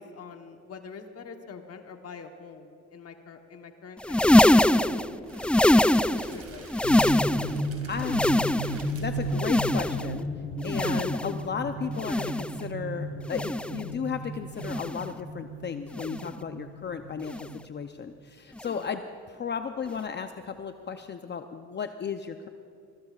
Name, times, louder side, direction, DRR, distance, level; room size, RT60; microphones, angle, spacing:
voice 1, 0.0-4.3 4.7-5.4 6.1-7.1 16.2-16.5 18.7-18.9, left 5 dB, 55° left, 5 dB, 1.2 m, -46 dB
sound 1, 4.0-6.4 6.7-7.6 8.0-8.9 9.3-10.2 10.6-11.4 11.9-12.6 13.3-13.8 14.6-15.1 15.9-16.4 17.3-17.6 18.6-18.8 19.9-20.0, left 1 dB, 5° left, 0.3 m, -23 dB
Crackle, 5.2-10.3, right 3 dB, 50° right, 2.6 m, -47 dB
sound 2, 6.8-18.0, equal, 75° left, 1.9 m, -35 dB
voice 2, 7.9-8.2 8.9-10.3 10.6-19.0 19.3-22.5, left 6 dB, 35° left, 7 dB, 0.6 m, -34 dB
21.5 x 21.0 x 2.4 m, 2.6 s
cardioid pair, 90°, 30 cm